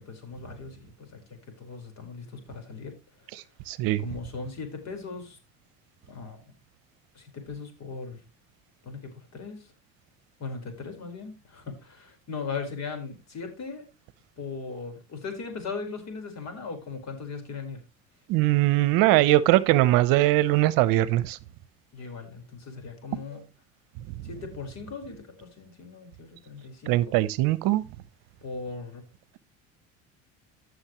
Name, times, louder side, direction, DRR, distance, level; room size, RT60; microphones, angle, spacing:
voice 1, 0.0-3.0 4.0-5.4 6.1-6.4 7.1-8.2 8.8-9.7 10.4-13.9 14.4-17.8 21.9-23.4 24.2-27.2 28.4-29.0, left 4 dB, 45° left, 4.8 m, -38 dB
voice 2, 3.3-4.0 18.3-21.4 26.9-27.8, right 16 dB, 65° right, 0.9 m, -21 dB
15.5 x 6.5 x 3.1 m
supercardioid pair, 85°, 37 cm